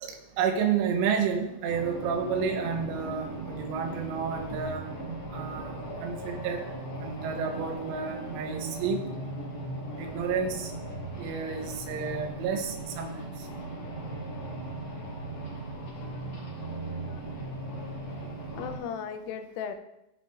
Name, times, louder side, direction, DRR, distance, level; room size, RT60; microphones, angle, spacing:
voice 1, 0.0-4.9 5.3-5.8 6.0-6.7 7.0-9.1 10.0-10.7 11.2-13.2, right 6 dB, 85° right, 3 dB, 3.5 m, -30 dB
sound 1, 1.7-18.8, right 2 dB, 45° left, 1.6 m, -38 dB
voice 2, 18.3-19.8, left 7 dB, 90° left, 8 dB, 3.3 m, -37 dB
15.0 x 6.9 x 2.5 m, 0.86 s
omnidirectional pair, 5.8 m